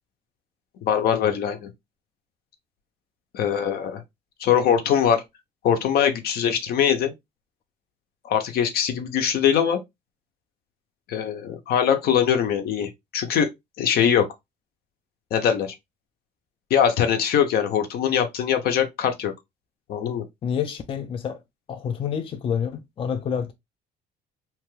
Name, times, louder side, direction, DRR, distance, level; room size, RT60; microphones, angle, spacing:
voice 1, 0.8-1.7 3.3-4.0 4.4-5.2 5.6-7.1 8.2-9.8 11.1-13.5 13.8-14.3 15.3-15.7 16.7-19.3 19.9-20.2, left 8 dB, 65° left, 0.7 m, -22 dB
voice 2, 20.4-21.4 21.7-23.5, left 7 dB, 30° left, 0.4 m, -28 dB
2.9 x 2.3 x 3.1 m
cardioid pair, 110°, 17 cm